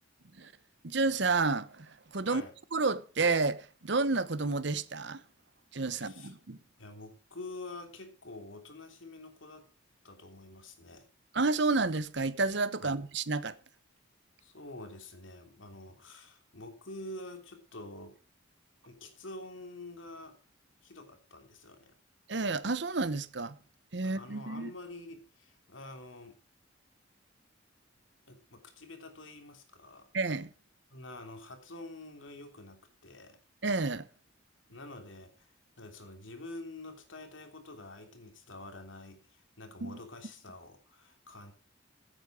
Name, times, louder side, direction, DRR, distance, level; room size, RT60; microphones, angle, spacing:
voice 1, 0.8-2.4 2.7-5.2 5.7-6.6 11.3-13.6 22.3-23.5 23.9-24.7 30.1-30.5 33.6-34.1 39.8-40.0, right 3 dB, 60° right, 0.9 m, -30 dB
voice 2, 6.0-6.3 6.8-9.7 10.0-11.1 12.8-13.0 14.4-18.2 18.8-20.4 20.8-21.9 24.0-26.4 28.3-30.1 30.9-33.4 34.7-41.5, left 2 dB, 80° left, 3.1 m, -47 dB
15.5 x 8.8 x 4.9 m
head